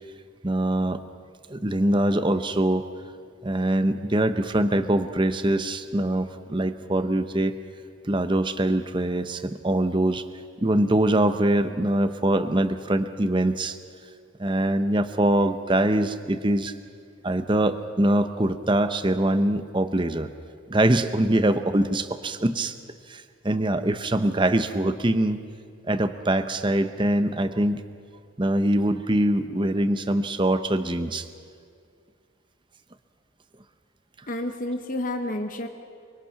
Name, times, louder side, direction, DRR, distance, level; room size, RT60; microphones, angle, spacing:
voice 1, 0.4-1.0 1.5-2.9 3.4-7.6 8.0-10.2 10.6-13.8 14.4-16.7 17.2-20.3 20.7-22.8 23.1-25.4 25.9-27.8 28.4-31.3, right 1 dB, 25° right, 10 dB, 0.8 m, -23 dB
voice 2, 34.3-35.7, left 1 dB, 40° left, 5 dB, 1.0 m, -30 dB
24.5 x 24.0 x 5.9 m, 2.2 s
head